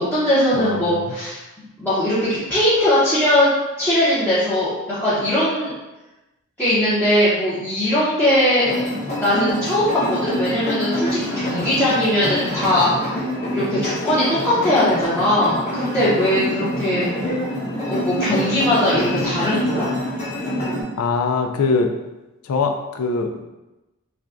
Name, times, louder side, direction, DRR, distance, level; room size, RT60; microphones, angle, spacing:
voice 1, 0.0-1.4 1.8-3.5 3.8-5.7 6.6-8.7 9.1-13.2 13.5-17.1 17.8-19.9, left 1 dB, 10° left, -13 dB, 0.8 m, -20 dB
voice 2, 0.5-1.1 21.0-21.9 22.4-23.4, left 4 dB, 80° left, 4 dB, 0.4 m, -22 dB
sound 1, 8.6-20.8, equal, 30° left, 1.1 m, -26 dB
5.7 x 2.2 x 2.5 m, 1.0 s
head